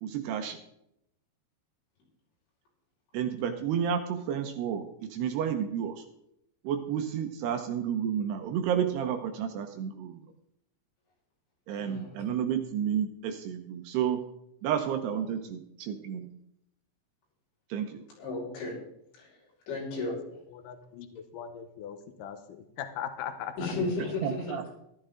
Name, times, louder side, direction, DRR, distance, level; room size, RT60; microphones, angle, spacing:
voice 1, 0.0-0.6 3.1-6.1 6.6-10.2 11.7-14.2 14.6-16.3 17.7-18.1 24.2-24.7, right 8 dB, 75° right, 7 dB, 2.6 m, -31 dB
voice 2, 11.8-12.2 18.2-18.7 19.2-19.3 19.7-20.1 23.6-24.3, left 3 dB, 75° left, -4 dB, 7.8 m, -33 dB
voice 3, 20.5-23.6 24.5-24.6, left 9 dB, 90° left, 8 dB, 1.9 m, -40 dB
14.5 x 13.0 x 3.8 m, 0.76 s
omnidirectional pair, 5.4 m